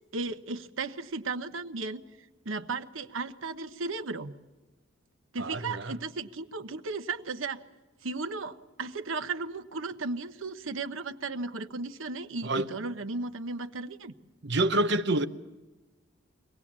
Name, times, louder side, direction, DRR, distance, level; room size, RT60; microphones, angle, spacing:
voice 1, 0.1-2.0 2.4-4.3 5.3-7.6 8.0-14.1, right 3 dB, 85° right, 1.0 m, -35 dB
voice 2, 5.4-6.0 12.4-12.7 14.4-15.3, right 2 dB, 60° right, 0.9 m, -27 dB
24.0 x 18.5 x 7.4 m
head